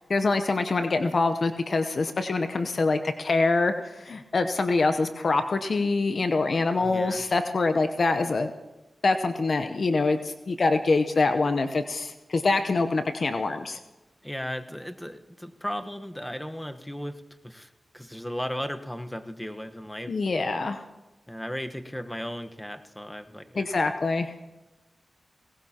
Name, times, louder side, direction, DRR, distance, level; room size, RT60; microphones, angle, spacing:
voice 1, 0.1-8.5 9.0-13.8 20.1-20.8 23.6-24.3, left 3 dB, 60° left, 8 dB, 0.8 m, -25 dB
voice 2, 6.8-7.2 14.2-17.7 17.9-20.1 21.3-23.6, equal, 10° left, 7 dB, 1.2 m, -36 dB
19.5 x 18.5 x 2.9 m, 1.1 s
cardioid pair, 40°, 0 cm